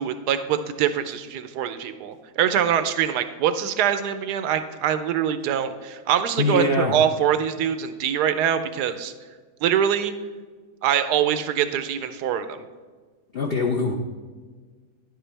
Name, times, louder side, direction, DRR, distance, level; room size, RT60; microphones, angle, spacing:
voice 1, 0.0-9.1 9.6-10.1 10.8-12.6, right 9 dB, 85° right, 10 dB, 1.2 m, -24 dB
voice 2, 6.4-6.9 13.3-14.0, left 3 dB, 50° left, 1 dB, 0.7 m, -23 dB
10.5 x 8.1 x 3.3 m, 1.4 s
omnidirectional pair, 1.7 m